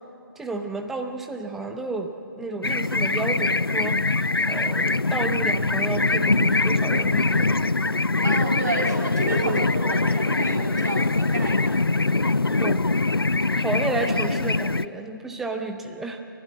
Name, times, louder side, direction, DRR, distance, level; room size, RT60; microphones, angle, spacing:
voice 1, 0.4-7.5 9.4-9.6 12.6-12.8 13.6-16.2, right 3 dB, ahead, 5 dB, 0.5 m, -31 dB
sound 1, 2.6-14.9, left 3 dB, 85° left, 0.5 m, -23 dB
voice 2, 8.2-11.8, right 2 dB, 45° right, -2 dB, 6.2 m, -30 dB
28.5 x 12.0 x 9.4 m, 2.8 s
figure-of-eight pair, 150°, 12 cm